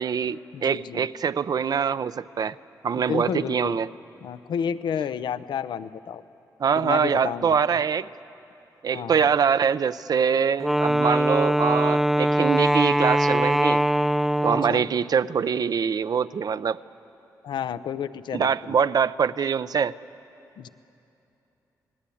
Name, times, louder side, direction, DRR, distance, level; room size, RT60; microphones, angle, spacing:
voice 1, 0.0-2.5 2.8-3.9 6.6-8.1 8.8-13.8 14.4-16.8 18.3-19.9, right 7 dB, 60° right, 14 dB, 0.5 m, -24 dB
voice 2, 0.5-1.1 3.0-3.8 4.2-6.2 6.8-7.6 8.9-9.3 14.5-14.8 17.4-18.8 20.6-20.7, left 8 dB, 85° left, 13 dB, 0.6 m, -31 dB
Wind instrument woodwind instrument, 10.6-14.9, equal, 5° right, 0.6 m, -22 dB
29.0 x 19.5 x 8.5 m, 2.9 s
cardioid pair, 70°, 8 cm